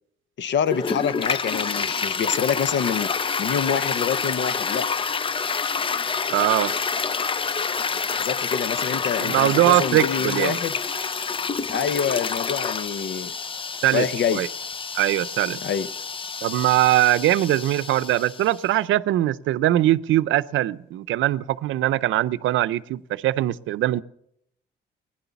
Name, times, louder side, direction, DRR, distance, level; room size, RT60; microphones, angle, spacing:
voice 1, 0.4-3.1 3.4-4.9 8.1-10.7 11.7-13.3 13.9-14.4 15.6-15.9, left 7 dB, 65° left, 0.8 m, -26 dB
Toilet flush, 0.7-18.6, left 5 dB, 25° left, 0.5 m, -28 dB
voice 2, 6.3-6.7 9.2-10.6 13.8-14.1 14.3-14.5 14.9-15.6 16.4-24.0, right 14 dB, 80° right, 0.6 m, -21 dB
17.5 x 10.5 x 7.0 m
cardioid pair, 90°, 20 cm